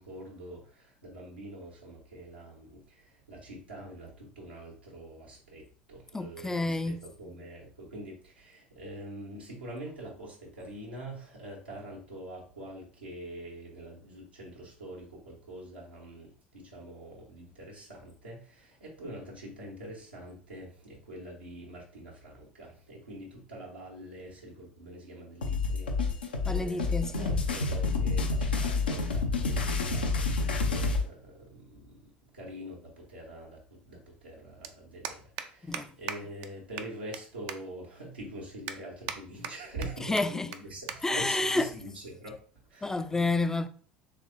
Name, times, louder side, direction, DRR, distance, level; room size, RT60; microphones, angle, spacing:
voice 1, 0.0-42.4 42.7-43.2, right 1 dB, 90° right, 1.1 m, -45 dB
voice 2, 6.1-7.0 26.4-27.4 35.6-35.9 40.1-40.5 41.0-41.7 42.8-43.7, left 2 dB, 10° left, 0.4 m, -29 dB
sound 1, 25.4-31.0, left 4 dB, 85° left, 0.6 m, -28 dB
sound 2, 32.3-32.4 33.9-34.0 34.1-34.3 34.6-34.7 35.0-35.5 35.7-35.8 36.1-36.2 36.4-36.5 36.8-37.2 37.5-37.6 38.0-38.1 38.7-39.2 39.4-39.9 40.2-40.3 40.5-40.6 40.9-41.0 41.3-41.5 42.3-42.6, right 9 dB, 60° right, 0.4 m, -37 dB
3.4 x 3.3 x 2.6 m
figure-of-eight pair, 70°, 5 cm